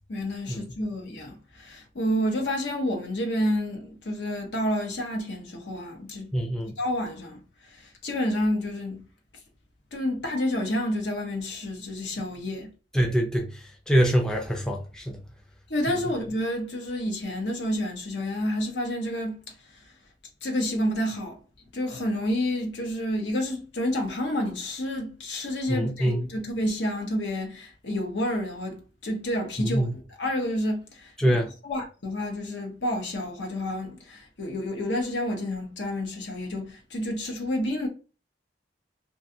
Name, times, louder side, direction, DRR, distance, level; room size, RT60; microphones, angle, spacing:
voice 1, 0.1-6.3 6.8-9.0 9.9-12.7 15.7-19.5 20.4-21.4 21.7-31.4 31.6-37.9, left 1 dB, 75° left, 0.8 m, -29 dB
voice 2, 6.3-6.7 12.9-15.2 25.7-26.3 29.6-29.9 31.2-31.5, equal, 5° left, 0.4 m, -24 dB
2.6 x 2.3 x 2.6 m
head